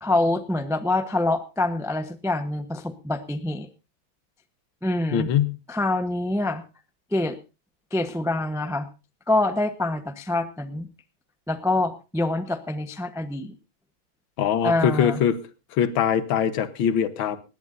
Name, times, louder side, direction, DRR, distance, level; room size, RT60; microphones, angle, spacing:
voice 1, 0.0-3.7 4.8-5.3 5.7-6.6 7.1-7.4 7.9-8.9 9.3-10.9 11.5-13.5 14.6-15.2, left 2 dB, 5° right, 10 dB, 0.4 m, -25 dB
voice 2, 5.1-5.6 14.4-15.4 15.7-17.4, left 8 dB, 75° left, 14 dB, 1.8 m, -22 dB
20.0 x 16.5 x 2.6 m, 0.30 s
omnidirectional pair, 2.2 m